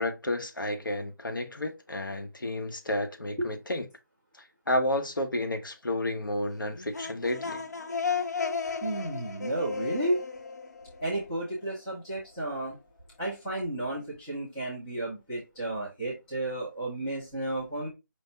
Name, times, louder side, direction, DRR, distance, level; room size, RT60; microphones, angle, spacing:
voice 1, 0.0-3.9 4.7-7.6, left 1 dB, 80° left, 1.1 m, -31 dB
sound 1, 6.7-11.5, left 5 dB, 55° left, 0.6 m, -34 dB
voice 2, 8.8-10.2 11.0-12.8 13.2-17.9, right 1 dB, 5° left, 0.4 m, -32 dB
5.1 x 2.3 x 3.9 m
figure-of-eight pair, 165°, 11 cm